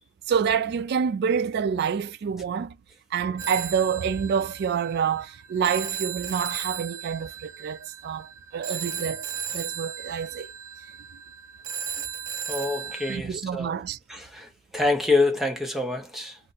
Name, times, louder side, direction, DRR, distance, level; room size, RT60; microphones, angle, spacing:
voice 1, 0.3-2.8 3.1-10.5 13.1-14.0, right 7 dB, 55° right, 0.3 m, -27 dB
Telephone, 3.4-13.2, right 8 dB, 85° right, 0.9 m, -36 dB
voice 2, 12.5-13.8 14.1-16.4, left 3 dB, ahead, 0.8 m, -26 dB
2.6 x 2.5 x 3.9 m
head